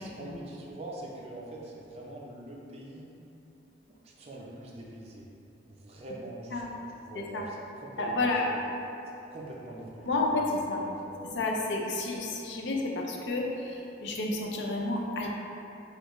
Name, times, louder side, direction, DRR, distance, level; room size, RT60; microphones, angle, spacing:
voice 1, 0.0-3.1 3.9-5.3 5.7-6.7 7.1-8.6 9.3-11.2, right 1 dB, 35° right, -4 dB, 0.5 m, -44 dB
voice 2, 8.0-8.5 10.1-10.8 11.4-15.3, left 2 dB, 70° left, 0 dB, 0.4 m, -30 dB
4.4 x 2.4 x 3.0 m, 2.8 s
head